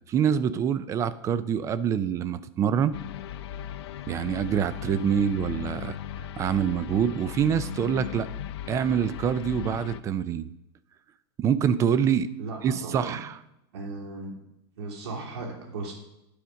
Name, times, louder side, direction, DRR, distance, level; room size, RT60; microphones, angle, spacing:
voice 1, 0.1-2.9 4.1-6.0 6.4-8.3 8.7-10.5 11.4-12.3 12.6-13.3, right 8 dB, 20° right, 15 dB, 0.4 m, -25 dB
sound 1, 2.9-10.0, left 10 dB, 80° left, 0.6 m, -37 dB
voice 2, 12.4-13.2 13.7-14.4 14.8-15.9, right 3 dB, 80° right, 1 dB, 2.9 m, -36 dB
9.7 x 5.0 x 6.3 m, 0.86 s
supercardioid pair, 145°, 14 cm